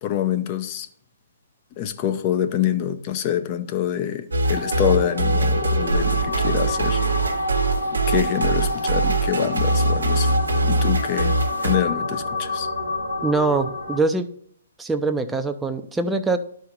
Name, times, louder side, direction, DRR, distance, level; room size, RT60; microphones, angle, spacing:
voice 1, 0.0-0.9 1.8-7.0 7.9-10.4 10.6-12.7, left 10 dB, 35° left, 0.7 m, -26 dB
sound 1, 4.3-11.8, right 2 dB, 90° right, 1.1 m, -22 dB
sound 2, 4.4-14.0, left 1 dB, 85° left, 2.8 m, -28 dB
voice 2, 13.2-14.3 14.8-16.4, right 3 dB, 5° right, 0.6 m, -23 dB
11.5 x 4.5 x 3.9 m
hypercardioid pair, 135°, 0 cm